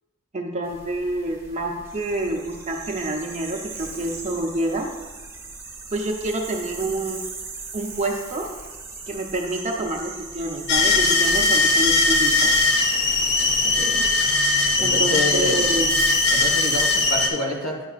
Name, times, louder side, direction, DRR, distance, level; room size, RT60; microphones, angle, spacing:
voice 1, 0.3-4.9 5.9-7.2 7.7-8.5 9.1-12.5 14.8-16.0, right 2 dB, 35° right, 1 dB, 0.7 m, -27 dB
sound 1, 0.6-17.1, right 4 dB, 10° right, 0.9 m, -38 dB
sound 2, 10.7-17.3, left 3 dB, 50° left, 0.8 m, -20 dB
voice 2, 13.6-14.0 14.7-15.6 16.3-17.8, left 1 dB, 90° left, 0 dB, 1.4 m, -28 dB
10.0 x 5.5 x 2.4 m, 1.3 s
head